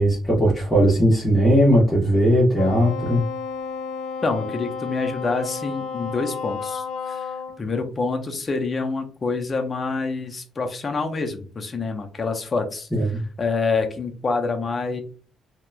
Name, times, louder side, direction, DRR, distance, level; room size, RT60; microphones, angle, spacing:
voice 1, 0.0-3.2 12.9-13.2, equal, 15° left, -6 dB, 1.0 m, -18 dB
Wind instrument woodwind instrument, 2.6-7.6, left 6 dB, 85° left, 0.3 m, -32 dB
voice 2, 4.2-7.3 7.6-12.9 13.4-15.0, left 4 dB, 35° left, 5 dB, 0.6 m, -26 dB
2.8 x 2.1 x 2.3 m, 0.38 s
cardioid pair, 95°, 0 cm